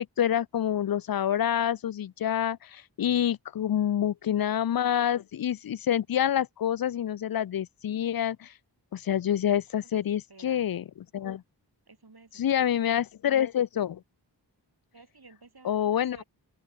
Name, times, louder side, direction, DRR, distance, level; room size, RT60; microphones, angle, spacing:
voice 1, 0.0-8.5 8.9-11.4 12.3-14.0 15.6-16.2, left 10 dB, 55° left, 0.5 m, -27 dB
voice 2, 10.3-10.7 11.9-12.8 14.9-16.2, right 3 dB, 60° right, 5.3 m, -54 dB
open air
wide cardioid pair, 65°, 43 cm